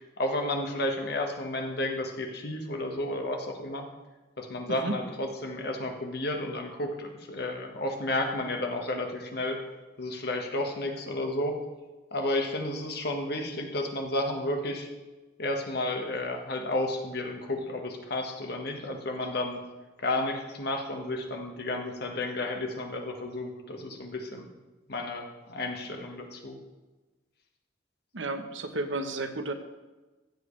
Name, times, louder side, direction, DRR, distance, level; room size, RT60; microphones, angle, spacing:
voice 1, 0.2-3.8 4.4-9.6 10.0-11.6 12.1-14.9 15.4-19.6 20.0-24.5 24.9-26.6, left 1 dB, 60° left, 3 dB, 1.4 m, -32 dB
voice 2, 28.1-29.5, right 2 dB, 85° right, 7 dB, 1.0 m, -32 dB
15.5 x 7.8 x 3.2 m, 1.2 s
head